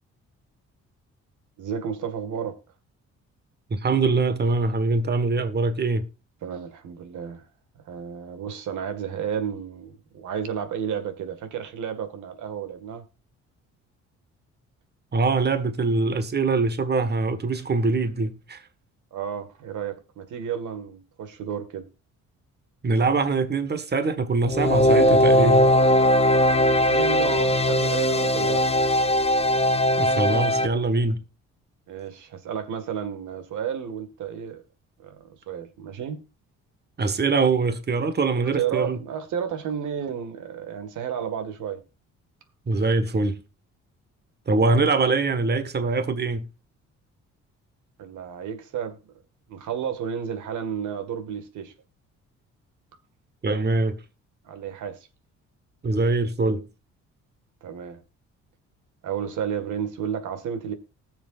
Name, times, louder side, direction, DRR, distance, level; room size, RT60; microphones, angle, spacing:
voice 1, 1.6-2.6 6.4-7.4 7.8-13.0 19.1-21.9 26.8-28.7 31.9-34.6 35.0-36.2 38.5-41.8 48.0-49.0 49.5-51.7 54.4-55.1 57.6-58.0 59.0-60.7, right 8 dB, 80° right, 2.0 m, -32 dB
voice 2, 3.7-6.1 15.1-18.6 22.8-25.7 30.0-31.2 37.0-39.0 42.7-43.4 44.5-46.5 53.4-54.0 55.8-56.6, right 3 dB, 35° right, 1.6 m, -23 dB
sound 1, 24.5-30.7, left 1 dB, 20° left, 1.1 m, -19 dB
19.5 x 7.1 x 2.5 m
cardioid pair, 90°, 30 cm